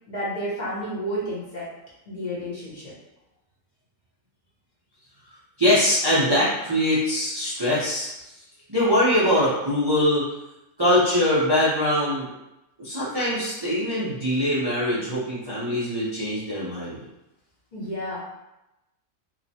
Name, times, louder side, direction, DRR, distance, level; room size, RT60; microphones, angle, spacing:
voice 1, 0.1-1.6 2.1-2.9 17.7-18.2, equal, 40° left, -8 dB, 0.8 m, -31 dB
voice 2, 5.6-8.1 8.7-10.2 10.8-12.3 12.8-17.0, left 1 dB, 45° right, -10 dB, 0.3 m, -22 dB
3.0 x 2.0 x 2.7 m, 0.93 s
omnidirectional pair, 1.4 m